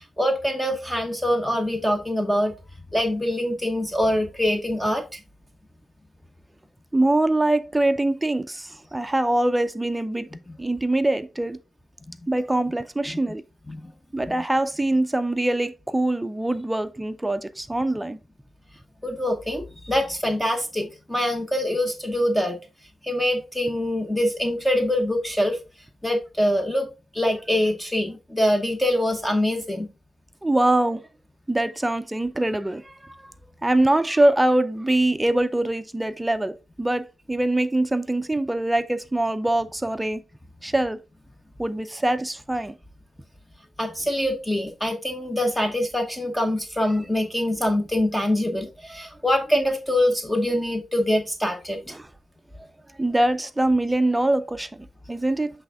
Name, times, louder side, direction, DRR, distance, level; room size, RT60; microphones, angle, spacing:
voice 1, 0.2-2.5 2.9-5.2 19.0-22.6 23.0-25.6 26.0-26.9 27.1-29.9 43.8-51.8, left 1 dB, 10° left, 0.8 m, -24 dB
voice 2, 6.9-10.3 10.6-11.6 12.3-13.4 14.1-18.2 30.4-31.0 31.5-33.3 33.6-40.2 40.6-41.0 41.6-42.8 48.9-49.1 51.9-52.1 53.0-55.5, right 1 dB, 15° right, 0.5 m, -23 dB
8.0 x 3.4 x 3.5 m
wide cardioid pair, 100°, 0 cm